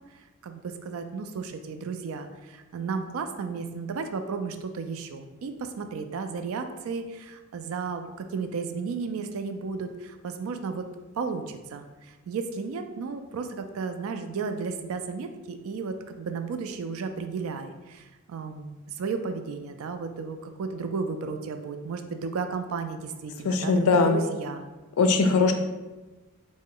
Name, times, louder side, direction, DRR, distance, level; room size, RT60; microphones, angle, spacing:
voice 1, 0.1-24.7 25.2-25.4, right 5 dB, 65° right, 7 dB, 0.3 m, -34 dB
voice 2, 23.4-24.2 25.0-25.5, left 4 dB, 85° left, 6 dB, 0.4 m, -20 dB
3.7 x 2.1 x 3.7 m, 1.2 s
head